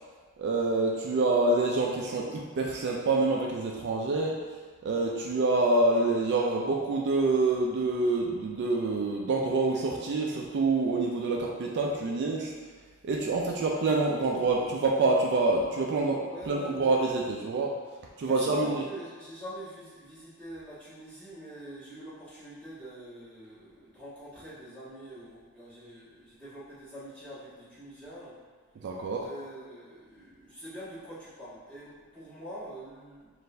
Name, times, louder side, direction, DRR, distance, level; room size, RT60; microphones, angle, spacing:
voice 1, 0.4-4.4 4.8-12.5 13.0-17.8 18.2-18.8 28.8-29.3, right 3 dB, 50° right, -1 dB, 0.4 m, -27 dB
voice 2, 16.3-16.8 18.3-28.4 29.2-33.3, right 1 dB, 5° left, -13 dB, 1.5 m, -44 dB
4.3 x 2.5 x 3.2 m, 1.5 s
head